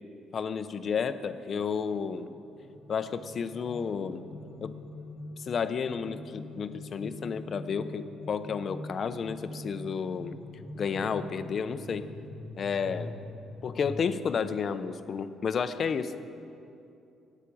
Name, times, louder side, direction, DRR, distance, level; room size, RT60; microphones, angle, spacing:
voice 1, 0.3-2.3 2.9-4.2 4.6-4.7 5.4-10.3 10.7-12.1 12.6-13.1 13.6-16.2, left 6 dB, 45° left, 11 dB, 0.7 m, -31 dB
sound 1, 1.5-14.1, left 2 dB, 90° left, 1.3 m, -44 dB
13.0 x 9.0 x 8.5 m, 2.7 s
cardioid pair, 115°, 0 cm